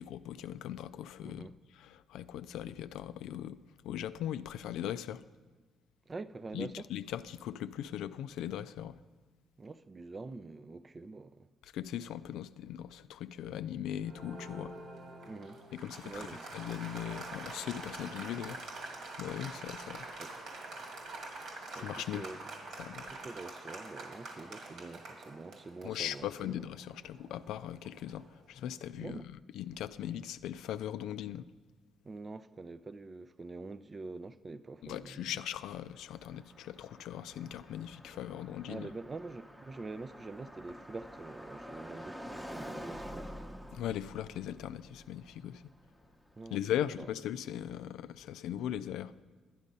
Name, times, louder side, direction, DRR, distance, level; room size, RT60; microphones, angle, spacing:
voice 1, 0.0-1.5 1.7-3.6 3.8-5.2 6.5-9.0 11.6-14.7 15.7-18.8 19.2-20.1 21.2-21.5 21.7-22.3 22.8-23.1 25.8-31.5 34.8-38.9 43.7-45.6 46.5-49.1, left 11 dB, 85° left, 0.3 m, -39 dB
voice 2, 1.2-1.6 6.1-6.9 9.6-11.5 15.2-15.6 16.0-16.4 20.2-20.3 21.8-22.4 23.1-26.6 29.0-29.3 32.0-35.3 38.7-43.3 46.3-46.6 47.0-47.1, right 3 dB, 30° right, 0.4 m, -45 dB
Applause, 14.0-28.4, right 2 dB, 75° right, 1.9 m, -46 dB
Car passing by, 35.2-47.3, equal, 5° right, 0.8 m, -48 dB
11.0 x 10.0 x 5.3 m
cardioid pair, 90°, 0 cm